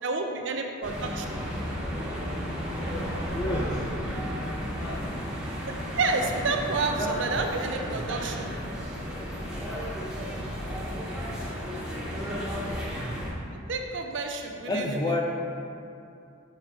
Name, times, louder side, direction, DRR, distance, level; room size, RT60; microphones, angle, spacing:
voice 1, 0.0-1.2 5.9-8.5 13.7-14.8, right 3 dB, 65° right, 4 dB, 0.5 m, -29 dB
sound 1, 0.8-13.3, equal, 5° right, 0.9 m, -33 dB
voice 2, 3.3-3.8 7.0-7.1 14.7-15.2, left 1 dB, 20° left, 0 dB, 0.5 m, -29 dB
6.5 x 3.6 x 4.7 m, 2.5 s
head